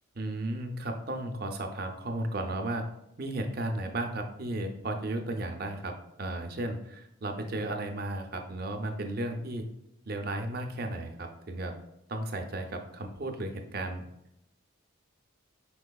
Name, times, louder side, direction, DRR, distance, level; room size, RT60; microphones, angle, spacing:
voice 1, 0.1-2.8 3.2-5.9 6.2-9.6 10.1-11.7 12.1-14.0, right 1 dB, 45° right, 4 dB, 0.6 m, -34 dB
5.4 x 4.3 x 2.3 m, 0.82 s
head